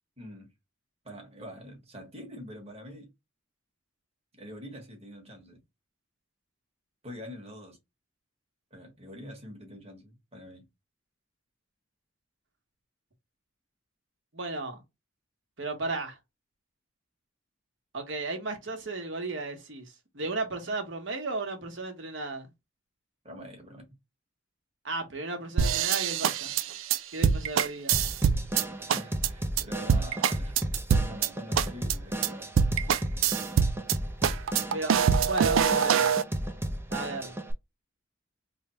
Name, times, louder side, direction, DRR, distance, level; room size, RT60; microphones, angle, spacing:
voice 1, 0.2-0.5 1.0-3.1 4.3-5.6 7.0-7.8 8.7-10.7 23.2-23.9 28.9-30.6 30.9-32.5, equal, 30° right, 1.3 m, -45 dB
voice 2, 14.3-14.8 15.6-16.2 17.9-19.8 20.1-22.5 24.8-26.6 27.1-28.0 34.7-36.1 36.9-37.4, right 3 dB, 65° right, 1.1 m, -34 dB
sound 1, 25.6-28.6 28.9-29.3 29.6-29.7 29.9-31.3 31.6-31.9 32.2-32.3 32.6-34.0 34.2-36.2, right 7 dB, 80° right, 0.4 m, -24 dB
Drum kit / Drum, 27.9-37.5, right 1 dB, 10° right, 0.5 m, -34 dB
3.3 x 2.2 x 4.2 m
head